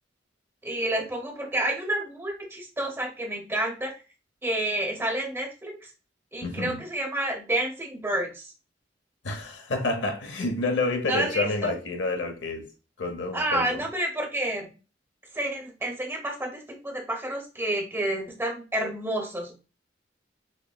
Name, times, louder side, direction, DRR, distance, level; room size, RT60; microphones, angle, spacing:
voice 1, 0.6-3.9 4.4-5.8 6.3-8.5 11.1-11.7 13.3-14.7 15.3-19.5, right 1 dB, 15° right, 0.8 m, -29 dB
voice 2, 6.4-6.8 9.2-12.7 13.0-13.8, left 2 dB, 70° left, 0.8 m, -29 dB
6.0 x 2.1 x 2.2 m
head